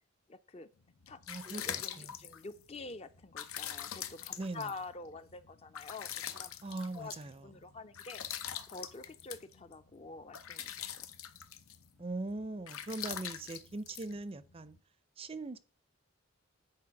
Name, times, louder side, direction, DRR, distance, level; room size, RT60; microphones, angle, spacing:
voice 1, 0.3-0.7 1.1-1.2 1.4-6.5 6.9-7.1 7.4-8.2 8.7-11.1, left 3 dB, 30° left, 0.5 m, -47 dB
sound 1, 0.8-14.8, left 9 dB, 90° left, 0.8 m, -44 dB
voice 2, 1.3-2.1 4.4-4.7 6.6-7.5 12.0-14.8 15.2-15.6, right 2 dB, 25° right, 0.5 m, -40 dB
8.6 x 4.6 x 5.8 m
head